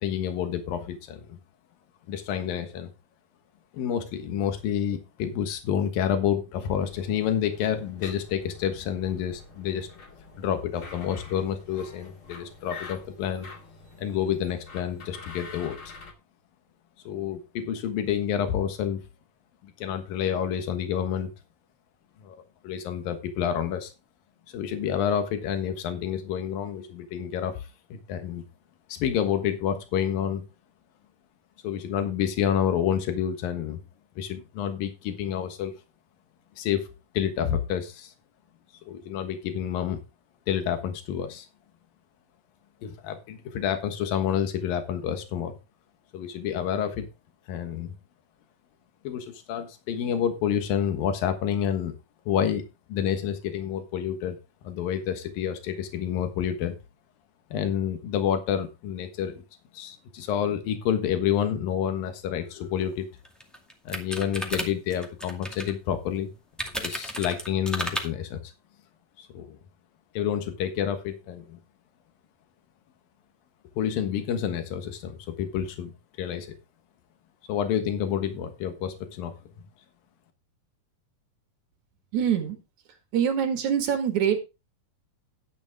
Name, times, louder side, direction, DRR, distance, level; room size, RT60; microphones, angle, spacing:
voice 1, 0.0-1.4 2.1-2.9 3.7-9.9 10.4-13.5 14.0-15.8 17.1-19.0 19.6-21.3 22.2-22.4 22.6-23.9 24.5-28.4 28.9-30.4 31.6-33.8 34.2-35.7 36.6-38.1 38.9-40.0 40.5-41.5 42.8-45.5 46.1-47.1 47.5-47.9 49.0-51.9 52.3-52.6 52.9-54.4 54.6-56.8 57.5-59.4 59.7-63.1 63.9-66.3 66.8-68.5 69.2-69.5 70.1-71.6 73.8-75.9 76.2-76.5 77.5-79.3, left 9 dB, 85° left, 7 dB, 3.2 m, -29 dB
sound 1, 6.6-16.1, left 4 dB, 40° left, 2.9 m, -46 dB
sound 2, 62.8-62.9 63.2-65.7 66.6-68.0, equal, ahead, 1.3 m, -33 dB
voice 2, 82.1-82.6 83.1-84.4, right 8 dB, 60° right, 7 dB, 3.1 m, -24 dB
12.0 x 9.5 x 3.6 m, 0.27 s
omnidirectional pair, 3.9 m